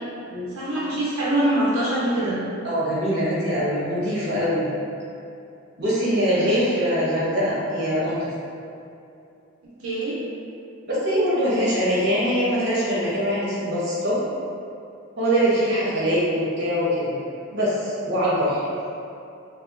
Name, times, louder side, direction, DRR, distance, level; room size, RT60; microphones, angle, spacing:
voice 1, 0.5-2.4 5.9-6.9 9.8-10.2 15.7-15.8, right 1 dB, 85° right, -8 dB, 0.6 m, -25 dB
voice 2, 2.6-4.7 5.8-8.3 10.9-14.2 15.2-17.1 17.5-18.7, equal, 50° right, -8 dB, 1.1 m, -23 dB
4.2 x 2.4 x 2.5 m, 2.7 s
head